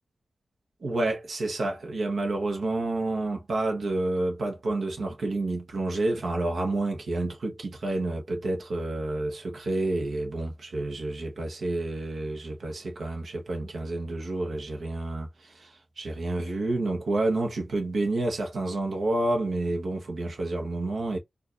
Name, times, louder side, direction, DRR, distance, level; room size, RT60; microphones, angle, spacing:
voice 1, 0.8-21.2, right 2 dB, 60° right, 1.0 m, -29 dB
4.7 x 2.5 x 2.5 m
wide cardioid pair, 160°, 0 cm